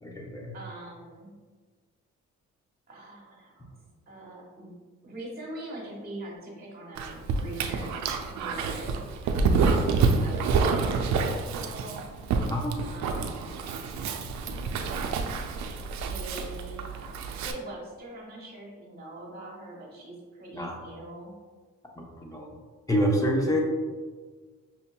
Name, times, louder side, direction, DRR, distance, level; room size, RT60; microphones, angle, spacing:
voice 1, 0.0-0.5 12.5-12.7 20.5-20.8 22.0-22.5 22.9-23.6, equal, 10° left, -1 dB, 0.7 m, -27 dB
voice 2, 0.5-1.3 2.9-3.8 4.1-4.7 5.0-7.9 8.3-9.0 9.2-12.0 12.8-13.5 16.0-21.3, right 1 dB, 30° right, -2 dB, 1.3 m, -42 dB
Dog, 7.0-17.5, right 4 dB, 70° right, 0.4 m, -28 dB
5.6 x 2.7 x 2.2 m, 1.5 s
cardioid pair, 90°, 30 cm